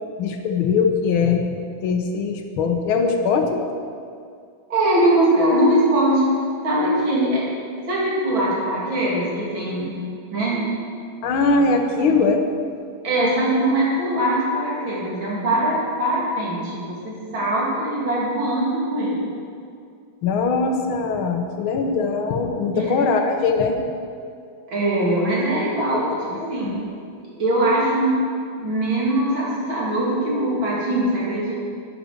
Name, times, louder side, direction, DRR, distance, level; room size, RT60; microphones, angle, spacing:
voice 1, 0.2-3.6 11.2-12.4 20.2-23.8 25.8-25.9 26.6-26.8, left 4 dB, 85° left, 5 dB, 1.8 m, -21 dB
voice 2, 4.7-6.3 6.6-7.5 7.9-10.0 10.3-10.7 12.1-12.2 13.0-19.2 22.7-23.0 24.7-26.9 27.2-28.2 28.6-31.5, right 1 dB, 70° right, -6 dB, 3.7 m, -21 dB
10.5 x 9.5 x 6.4 m, 2.3 s
omnidirectional pair, 2.2 m